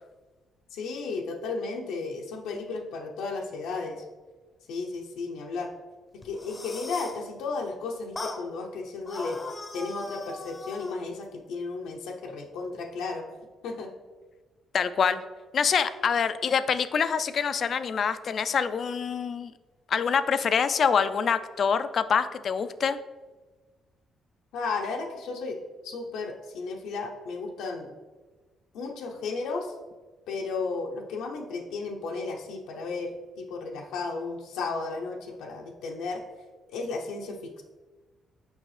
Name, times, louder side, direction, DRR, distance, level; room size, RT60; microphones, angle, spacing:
voice 1, 0.7-4.0 4.7-5.7 6.2-9.4 9.7-13.3 13.6-13.9 24.5-25.6 25.8-27.9 28.7-29.7 30.3-36.2 36.7-37.6, left 4 dB, 90° left, 0 dB, 0.6 m, -34 dB
sound 1, 6.2-7.2 8.2-8.4 9.1-11.0, left 2 dB, 25° left, 0.7 m, -39 dB
voice 2, 14.7-15.2 15.5-19.5 19.9-23.0, left 6 dB, 55° left, 12 dB, 0.3 m, -25 dB
6.3 x 5.3 x 3.2 m, 1.3 s
cardioid pair, 90°, 0 cm